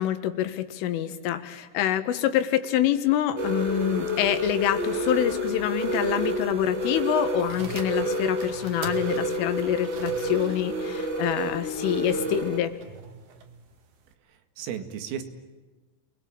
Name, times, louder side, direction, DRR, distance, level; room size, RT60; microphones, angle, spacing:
voice 1, 0.0-12.7, left 11 dB, 80° left, 9 dB, 4.0 m, -26 dB
sound 1, 3.4-12.6, equal, 70° right, 0.6 m, -29 dB
sound 2, 7.3-14.1, right 5 dB, 55° right, 3.6 m, -44 dB
voice 2, 14.3-15.2, right 8 dB, 85° right, 8 dB, 4.7 m, -35 dB
29.5 x 21.5 x 8.9 m, 1.3 s
omnidirectional pair, 5.8 m